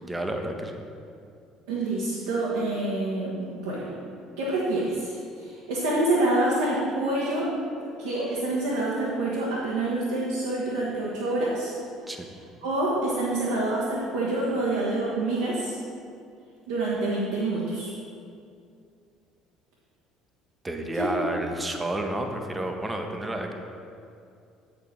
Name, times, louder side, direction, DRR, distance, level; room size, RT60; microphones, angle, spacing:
voice 1, 0.0-0.8 12.1-12.3 20.6-23.5, right 1 dB, 15° right, 4 dB, 0.9 m, -30 dB
voice 2, 1.7-3.8 4.4-7.5 7.8-11.8 12.6-15.8 16.7-17.9 21.0-21.3, right 2 dB, 70° right, -6 dB, 1.1 m, -27 dB
7.7 x 5.3 x 4.6 m, 2.4 s
figure-of-eight pair, 55°, 0 cm